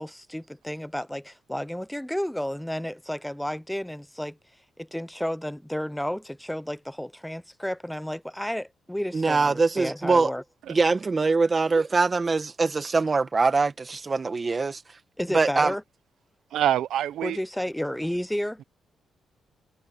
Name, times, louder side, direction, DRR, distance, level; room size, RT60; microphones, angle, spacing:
voice 1, 0.0-4.4 4.8-10.4 15.2-15.8 17.2-18.6, equal, 5° left, 0.7 m, -32 dB
voice 2, 9.1-10.3 10.7-14.8 15.3-15.7, right 4 dB, 30° right, 1.4 m, -23 dB
voice 3, 16.5-17.4, right 11 dB, 85° right, 0.8 m, -25 dB
cardioid pair, 115°, 0 cm